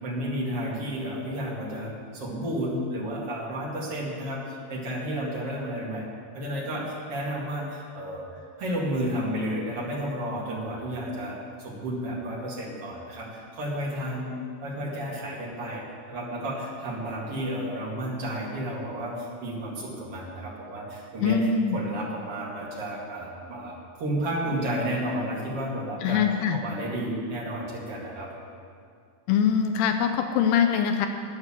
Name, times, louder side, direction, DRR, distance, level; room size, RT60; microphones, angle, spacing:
voice 1, 0.0-6.1 6.3-8.3 8.6-14.3 14.6-21.4 21.7-26.2 26.5-28.6, right 1 dB, 45° right, -4 dB, 2.3 m, -32 dB
voice 2, 21.2-21.8 26.0-26.6 29.3-31.1, left 7 dB, 80° left, 6 dB, 2.6 m, -23 dB
9.5 x 8.9 x 7.4 m, 2.3 s
omnidirectional pair, 5.0 m